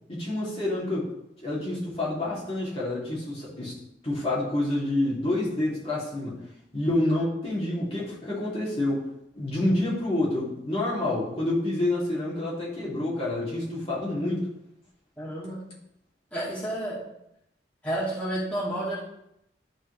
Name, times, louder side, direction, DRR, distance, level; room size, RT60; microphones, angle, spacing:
voice 1, 0.1-1.1 1.4-3.8 4.0-6.4 6.7-9.1 9.4-14.5, left 1 dB, 30° left, -7 dB, 2.5 m, -28 dB
voice 2, 15.2-15.6 16.3-17.0 17.8-19.0, right 1 dB, 10° left, -9 dB, 2.2 m, -30 dB
12.5 x 4.3 x 3.2 m, 0.80 s
head